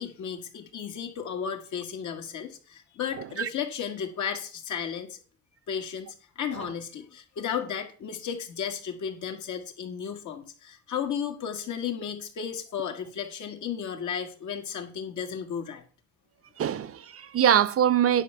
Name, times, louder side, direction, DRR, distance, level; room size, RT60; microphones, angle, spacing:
voice 1, 0.0-5.2 5.7-15.8, left 7 dB, 75° left, 1.9 m, -34 dB
voice 2, 3.2-3.5 6.6-6.7 16.6-18.2, right 9 dB, 50° right, 0.6 m, -24 dB
10.0 x 4.6 x 6.6 m
cardioid pair, 90°, 30 cm